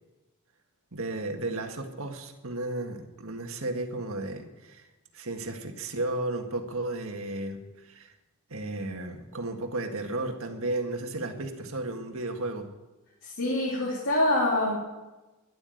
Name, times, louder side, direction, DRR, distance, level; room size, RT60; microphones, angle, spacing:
voice 1, 0.9-4.9 5.1-8.1 8.5-12.7, right 2 dB, 65° right, 4 dB, 1.8 m, -34 dB
voice 2, 13.2-14.8, left 1 dB, 65° left, -5 dB, 3.6 m, -25 dB
12.0 x 11.5 x 9.2 m, 1.1 s
head